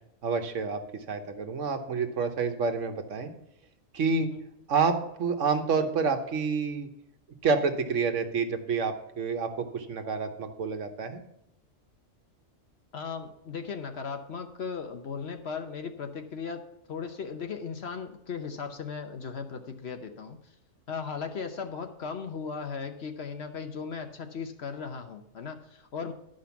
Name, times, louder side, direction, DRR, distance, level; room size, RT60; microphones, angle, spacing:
voice 1, 0.2-3.3 3.9-4.3 4.7-6.9 7.4-11.2, right 5 dB, 65° right, 7 dB, 1.3 m, -28 dB
voice 2, 12.9-20.4 20.9-26.1, left 5 dB, 55° left, 6 dB, 1.0 m, -37 dB
12.0 x 5.1 x 7.0 m, 0.80 s
omnidirectional pair, 1.4 m